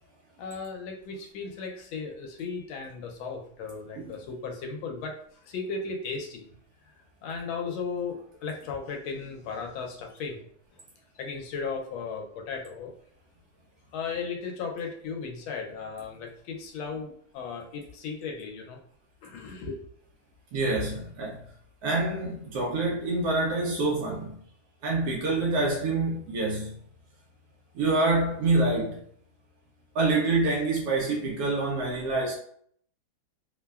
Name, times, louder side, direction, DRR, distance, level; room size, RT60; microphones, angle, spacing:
voice 1, 0.4-6.4 7.2-10.4 10.7-10.8 11.1-12.9 13.9-18.8 19.2-19.8, left 5 dB, 80° left, 1.3 m, -36 dB
voice 2, 20.5-21.4 21.8-24.4 24.8-26.7 27.8-29.0 29.9-32.3, right 2 dB, 85° right, 0.8 m, -26 dB
3.2 x 2.1 x 2.2 m
omnidirectional pair, 2.2 m